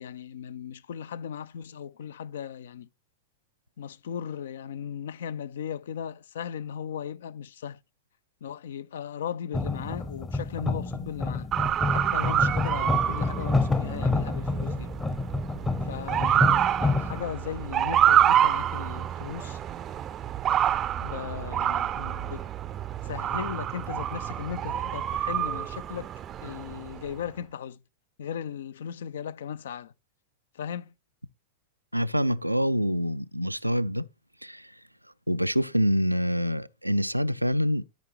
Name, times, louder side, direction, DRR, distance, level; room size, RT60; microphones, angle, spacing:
voice 1, 0.0-2.9 3.8-7.8 8.4-11.5 11.9-14.9 15.8-19.6 21.0-22.5 23.0-26.1 26.4-27.8 28.2-29.9 30.5-30.9, left 8 dB, 60° left, 0.4 m, -37 dB
sound 1, 9.5-17.2, left 3 dB, 10° left, 0.7 m, -28 dB
Motor vehicle (road) / Siren, 11.5-27.1, right 10 dB, 30° right, 0.5 m, -27 dB
voice 2, 31.9-34.1 34.4-34.7 35.3-37.8, equal, 90° right, 0.3 m, -26 dB
13.0 x 5.1 x 3.1 m
figure-of-eight pair, 90°, 0 cm